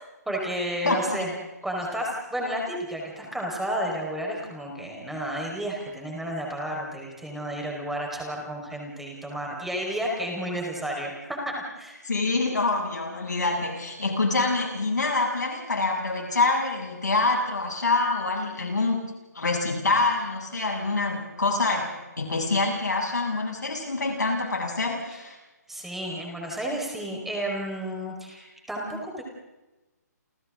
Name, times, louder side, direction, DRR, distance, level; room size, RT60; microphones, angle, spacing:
voice 1, 0.3-1.3 1.6-12.0 25.7-29.2, equal, ahead, -2 dB, 5.0 m, -32 dB
voice 2, 0.8-1.3 12.0-19.0 19.3-21.9 22.2-25.4, left 3 dB, 80° left, -1 dB, 7.7 m, -26 dB
29.5 x 29.5 x 3.9 m, 1.1 s
figure-of-eight pair, 145°, 9 cm